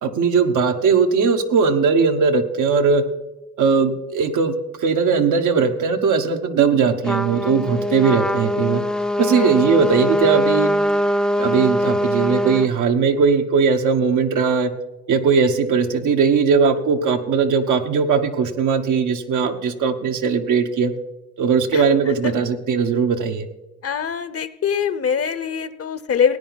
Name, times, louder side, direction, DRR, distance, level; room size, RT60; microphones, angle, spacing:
voice 1, 0.0-3.0 3.6-8.8 9.2-10.7 11.4-14.7 15.1-20.9 21.4-23.5, right 5 dB, 85° right, 5 dB, 1.1 m, -19 dB
Trumpet, 7.0-12.7, equal, 5° left, 0.4 m, -22 dB
voice 2, 23.8-26.4, left 7 dB, 50° left, 14 dB, 0.8 m, -23 dB
17.0 x 9.3 x 4.0 m, 1.1 s
cardioid pair, 80°, 30 cm